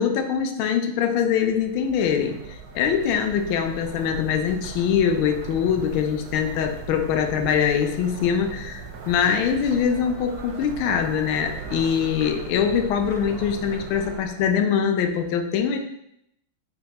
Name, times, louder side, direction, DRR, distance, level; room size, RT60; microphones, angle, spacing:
voice 1, 0.0-15.8, left 7 dB, 80° left, 5 dB, 1.4 m, -23 dB
sound 1, 1.2-14.6, right 5 dB, 65° right, 1.0 m, -39 dB
3.8 x 3.5 x 4.0 m, 0.80 s
omnidirectional pair, 2.3 m